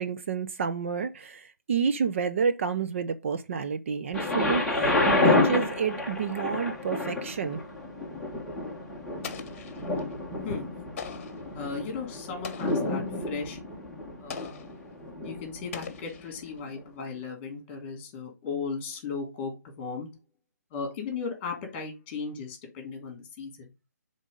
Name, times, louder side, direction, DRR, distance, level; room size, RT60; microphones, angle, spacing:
voice 1, 0.0-7.6, right 6 dB, 45° right, 0.7 m, -29 dB
Thunder, 4.1-16.0 16.7-16.8, left 2 dB, ahead, 1.4 m, -29 dB
Explosion, 9.2-10.1 11.0-11.5 12.4-13.0 14.3-14.8 15.7-16.6, left 6 dB, 40° left, 1.2 m, -41 dB
voice 2, 10.4-10.9 11.5-13.6 14.1-14.5 15.2-20.1 20.7-23.7, left 5 dB, 25° left, 3.2 m, -36 dB
7.3 x 3.8 x 5.2 m
figure-of-eight pair, 150°, 10 cm